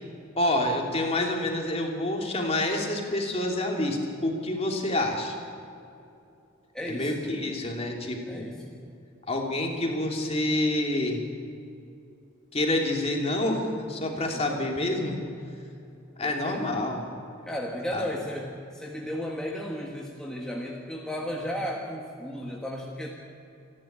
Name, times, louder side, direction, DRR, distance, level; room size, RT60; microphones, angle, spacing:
voice 1, 0.3-5.3 6.9-8.5 9.3-11.2 12.5-15.2 16.2-17.0 17.9-18.1, left 1 dB, 30° left, 1 dB, 2.8 m, -27 dB
voice 2, 6.7-7.2 8.3-8.8 14.1-14.6 16.2-16.7 17.5-23.1, equal, 5° left, -2 dB, 1.5 m, -34 dB
28.0 x 11.0 x 8.7 m, 2.7 s
head